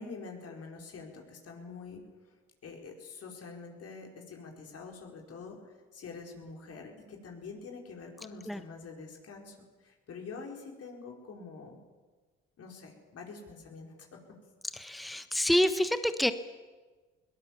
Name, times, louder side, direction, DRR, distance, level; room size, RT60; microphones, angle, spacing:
voice 1, 0.0-2.0 2.6-9.6 9.8-11.8 12.6-14.4, left 4 dB, 55° left, 1 dB, 5.0 m, -46 dB
voice 2, 14.7-16.3, left 1 dB, ahead, 10 dB, 1.3 m, -27 dB
22.0 x 18.5 x 7.3 m, 1.3 s
supercardioid pair, 65°, 30 cm